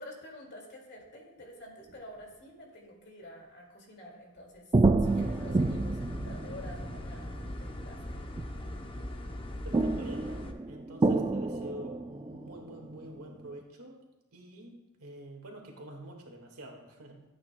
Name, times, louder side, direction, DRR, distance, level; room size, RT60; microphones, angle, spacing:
voice 1, 0.0-4.6 5.0-8.2, left 1 dB, 50° left, 0 dB, 2.1 m, -49 dB
sound 1, 4.7-8.9 9.7-13.1 13.4-13.5, right 3 dB, 20° right, 0.3 m, -29 dB
sound 2, 5.0-10.5, left 1 dB, 25° left, 0.7 m, -40 dB
voice 2, 9.6-14.0 14.3-17.2, right 1 dB, 70° right, 2 dB, 1.8 m, -47 dB
14.0 x 8.7 x 2.2 m, 0.97 s
head